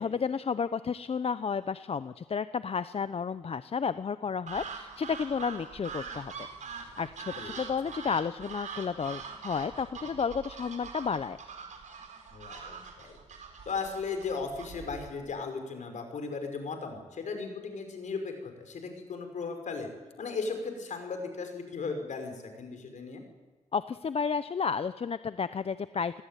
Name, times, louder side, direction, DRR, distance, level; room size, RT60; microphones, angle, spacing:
voice 1, 0.0-6.3 7.0-11.4 23.7-26.2, left 6 dB, 50° left, 14 dB, 0.8 m, -32 dB
sound 1, 4.5-15.2, right 5 dB, 70° right, 5.0 m, -43 dB
voice 2, 12.3-13.2 13.7-19.9 20.2-23.2, left 4 dB, 70° left, 5 dB, 6.0 m, -36 dB
29.0 x 20.0 x 9.4 m, 1.3 s
cardioid pair, 70°, 13 cm